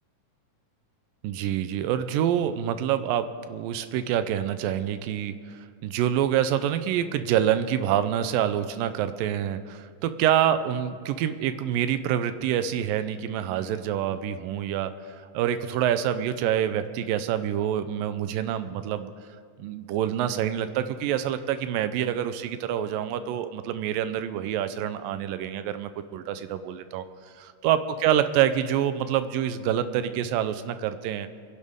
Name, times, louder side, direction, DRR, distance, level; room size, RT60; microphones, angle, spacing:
voice 1, 1.2-19.1 19.6-27.1 27.4-31.3, right 10 dB, 85° right, 11 dB, 2.4 m, -26 dB
28.5 x 10.5 x 3.6 m, 2.1 s
omnidirectional pair, 3.9 m